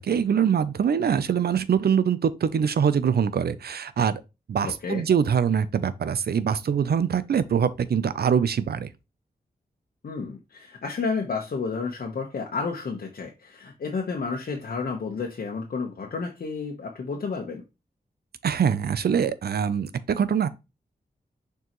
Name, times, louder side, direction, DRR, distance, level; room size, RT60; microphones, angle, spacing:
voice 1, 0.0-4.2 4.5-8.9 18.4-20.5, right 7 dB, 75° right, 0.6 m, -23 dB
voice 2, 4.6-5.0 10.0-17.6, left 4 dB, 65° left, 1.1 m, -31 dB
6.6 x 4.6 x 3.1 m
wide cardioid pair, 105°, 17 cm